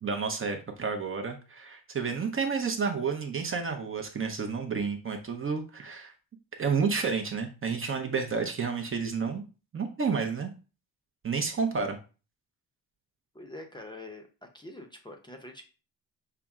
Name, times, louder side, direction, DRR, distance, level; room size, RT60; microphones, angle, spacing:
voice 1, 0.0-6.1 6.6-9.4 9.7-10.5 11.2-12.0, right 5 dB, 35° right, 4 dB, 0.6 m, -30 dB
voice 2, 13.3-14.2 14.5-15.6, left 2 dB, 10° left, 2 dB, 0.6 m, -44 dB
5.7 x 2.0 x 3.5 m, 0.33 s
cardioid pair, 120°, 38 cm